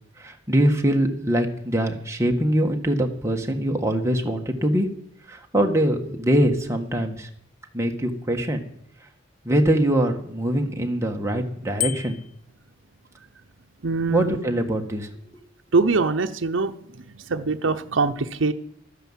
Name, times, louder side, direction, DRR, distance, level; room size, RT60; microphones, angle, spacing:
voice 1, 0.2-4.9 5.3-7.3 7.7-8.6 9.4-12.2 14.1-15.1, right 1 dB, 15° right, 2 dB, 1.5 m, -23 dB
Bicycle bell, 11.8-12.4, left 12 dB, 45° left, 0.4 m, -29 dB
voice 2, 13.8-14.4 15.7-16.7 17.0-18.5, right 3 dB, 80° right, 5 dB, 0.8 m, -23 dB
12.5 x 10.0 x 7.4 m, 0.69 s
head